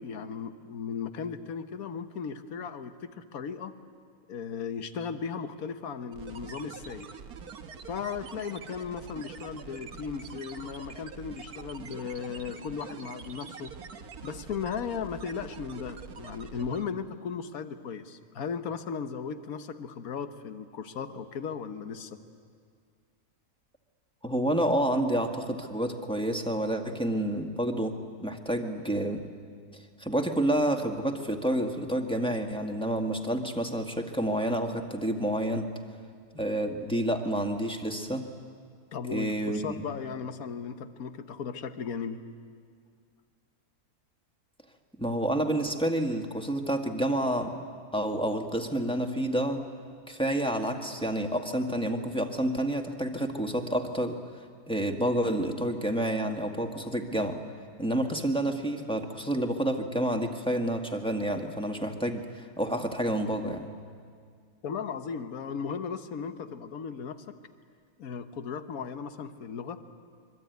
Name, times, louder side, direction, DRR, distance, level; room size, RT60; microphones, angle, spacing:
voice 1, 0.0-3.7 4.3-7.1 7.9-13.7 14.2-22.2 38.9-42.2 64.6-67.3 68.0-69.8, left 6 dB, 70° left, 10 dB, 1.5 m, -36 dB
sound 1, 6.1-17.0, right 6 dB, 85° right, 1.7 m, -45 dB
voice 2, 24.2-29.2 30.0-35.7 36.3-38.3 39.1-39.7 45.0-47.6 47.9-49.7 50.1-54.2 54.7-57.4 57.8-63.7, right 1 dB, 5° left, 4 dB, 1.6 m, -29 dB
25.5 x 23.0 x 9.4 m, 2.1 s
omnidirectional pair, 1.6 m